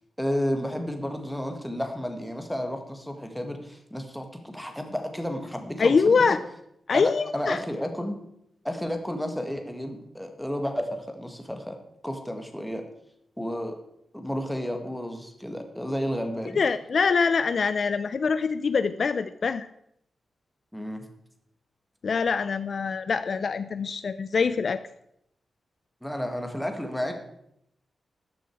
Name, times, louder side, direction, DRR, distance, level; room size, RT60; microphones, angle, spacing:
voice 1, 0.2-6.4 6.9-8.2 8.6-11.8 12.0-12.8 13.4-13.8 14.1-16.6 20.7-21.0 26.0-27.1, equal, ahead, 5 dB, 1.8 m, -32 dB
voice 2, 5.8-6.4 6.9-7.6 16.6-19.7 22.0-24.8, left 5 dB, 50° left, 12 dB, 0.5 m, -24 dB
14.0 x 10.5 x 4.7 m, 0.75 s
wide cardioid pair, 140°, 0 cm